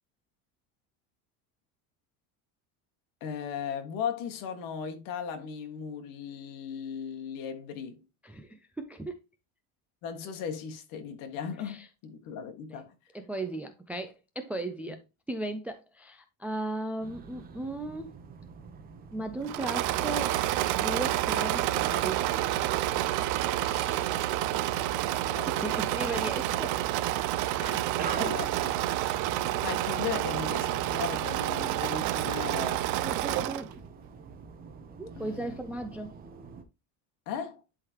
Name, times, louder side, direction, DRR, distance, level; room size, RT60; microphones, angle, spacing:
voice 1, 3.2-8.1 10.0-12.9 23.8-26.0 27.6-29.2 29.6-32.9 33.3-33.6 35.2-35.6 37.3-37.6, left 7 dB, 60° left, 1.7 m, -38 dB
voice 2, 8.2-9.2 11.6-11.9 12.7-12.8 13.1-15.0 15.3-18.2 19.1-20.4 20.7-22.2 25.5-26.8 33.0-33.7 35.0-36.1, right 2 dB, 5° right, 0.3 m, -36 dB
sound 1, 17.0-36.6, right 5 dB, 25° right, 0.8 m, -46 dB
Engine / Mechanisms, 19.4-33.7, right 14 dB, 55° right, 0.6 m, -29 dB
11.0 x 3.9 x 2.9 m
cardioid pair, 165°, 37 cm